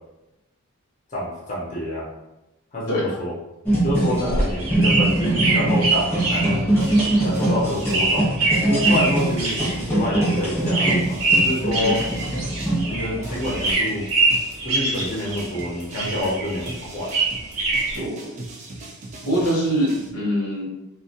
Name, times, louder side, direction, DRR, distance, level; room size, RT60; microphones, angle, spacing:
voice 1, 1.1-2.1 2.7-3.3 3.8-6.7 7.2-8.3 8.6-12.0 12.9-14.1 14.6-17.1, left 1 dB, 35° left, -6 dB, 0.6 m, -27 dB
voice 2, 2.9-3.2 4.2-4.4 7.3-7.7 11.7-12.1 17.9-18.4 19.2-20.7, equal, 90° left, -4 dB, 0.8 m, -25 dB
sound 1, 3.7-13.7, right 1 dB, 10° left, 0.9 m, -23 dB
sound 2, 4.1-13.2 13.4-15.7 15.9-18.0, right 3 dB, 85° right, 0.7 m, -24 dB
sound 3, 6.4-12.9 13.2-20.1, right 2 dB, 30° right, 0.3 m, -39 dB
2.2 x 2.1 x 2.7 m, 0.98 s
head